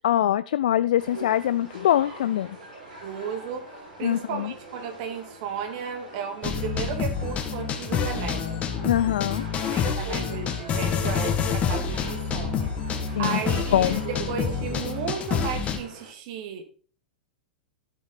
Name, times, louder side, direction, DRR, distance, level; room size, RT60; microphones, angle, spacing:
voice 1, 0.0-2.6 4.0-4.5 8.8-9.5 13.2-13.4 13.7-14.0, left 11 dB, 60° left, 15 dB, 0.4 m, -23 dB
sound 1, 1.0-16.1, right 2 dB, 65° right, 6.1 m, -42 dB
voice 2, 3.0-8.6 9.6-16.6, right 7 dB, 45° right, 6 dB, 2.0 m, -34 dB
sound 2, 6.4-15.8, left 6 dB, 25° left, 1.8 m, -28 dB
12.0 x 7.9 x 4.1 m, 0.41 s
figure-of-eight pair, 95°, 5 cm